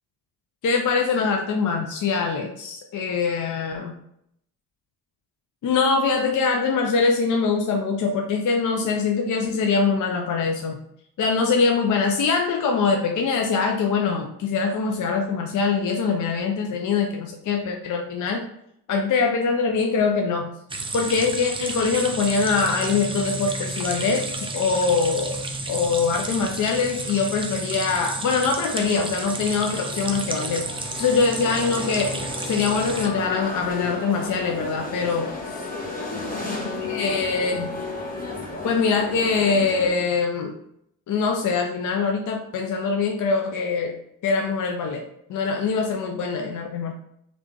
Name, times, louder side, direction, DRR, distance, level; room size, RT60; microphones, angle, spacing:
voice 1, 0.6-3.9 5.6-10.8 11.2-18.4 18.9-20.5 20.9-25.4 25.7-30.6 31.0-35.6 36.8-37.7 38.6-40.5 41.1-43.9 44.2-46.9, left 5 dB, 45° left, 2 dB, 0.5 m, -23 dB
sound 1, 20.7-33.1, right 2 dB, 10° right, 0.4 m, -31 dB
sound 2, 28.8-39.9, left 3 dB, 20° left, 1.1 m, -33 dB
3.2 x 2.5 x 3.2 m, 0.74 s
hypercardioid pair, 45°, 45 cm